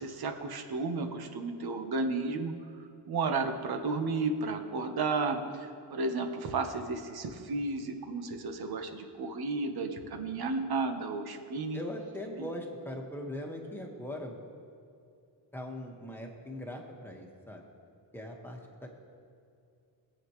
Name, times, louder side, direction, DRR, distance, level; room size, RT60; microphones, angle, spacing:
voice 1, 0.0-2.5 3.1-11.8 12.4-12.5, right 3 dB, 55° right, 5 dB, 1.3 m, -33 dB
voice 2, 11.7-14.3 15.5-17.7 18.1-18.9, left 1 dB, 5° left, 0 dB, 1.7 m, -40 dB
21.0 x 8.2 x 3.2 m, 2.4 s
cardioid pair, 115°, 44 cm